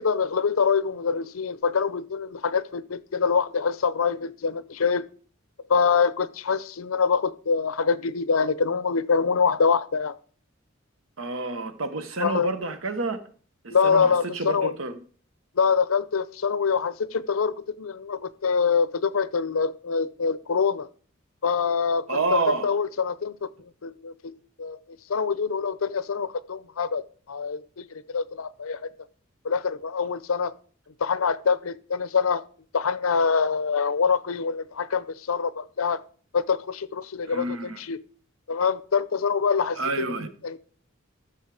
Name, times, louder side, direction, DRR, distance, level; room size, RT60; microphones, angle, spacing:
voice 1, 0.0-5.0 5.7-10.2 12.2-12.5 13.7-14.7 15.6-20.9 21.4-23.5 23.8-24.3 24.6-24.8 25.1-28.9 29.4-30.5 31.0-32.4 32.7-36.0 36.3-38.0 38.5-40.1 40.4-40.6, left 5 dB, 85° left, 0.6 m, -25 dB
voice 2, 11.2-13.2 13.6-15.0 22.1-22.7 37.3-37.8 39.8-40.3, right 3 dB, 75° right, 1.2 m, -29 dB
14.0 x 6.4 x 4.9 m
head